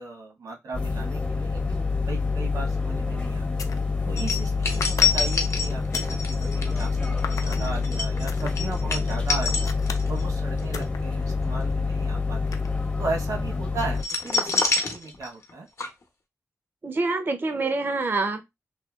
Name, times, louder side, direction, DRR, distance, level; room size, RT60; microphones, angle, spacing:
voice 1, 0.0-3.5 4.0-9.7 10.1-12.6 13.0-14.6 14.9-15.7, right 3 dB, 90° right, 0.9 m, -36 dB
sound 1, 0.7-14.0, left 4 dB, 20° left, 0.5 m, -27 dB
sound 2, 2.6-2.8 3.4-3.9 4.8-6.2 7.2-7.7 8.3-8.5 9.4-10.1 10.7-11.0 11.4-13.2 14.5-15.0, left 6 dB, 85° left, 0.4 m, -38 dB
sound 3, 4.2-10.2 10.6-10.8 14.0-15.5 15.8-15.9, left 4 dB, 55° left, 0.7 m, -26 dB
voice 2, 16.8-18.6, right 3 dB, 40° right, 0.3 m, -26 dB
2.7 x 2.2 x 2.3 m
wide cardioid pair, 75°, 6 cm